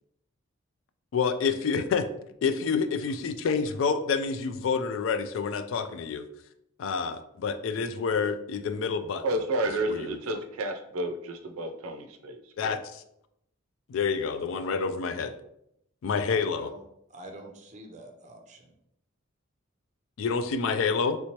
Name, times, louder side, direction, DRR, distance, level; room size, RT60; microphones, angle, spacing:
voice 1, 1.1-2.1 2.4-6.3 6.8-9.2 9.9-10.4 12.6-13.0 13.9-15.3 16.0-16.7 20.2-21.2, left 5 dB, 65° left, 10 dB, 0.3 m, -28 dB
voice 2, 9.2-12.8, right 1 dB, 85° right, 6 dB, 0.5 m, -31 dB
voice 3, 16.3-16.8 17.1-18.6, right 1 dB, 35° right, 2 dB, 0.5 m, -45 dB
3.3 x 3.0 x 2.9 m, 0.77 s
head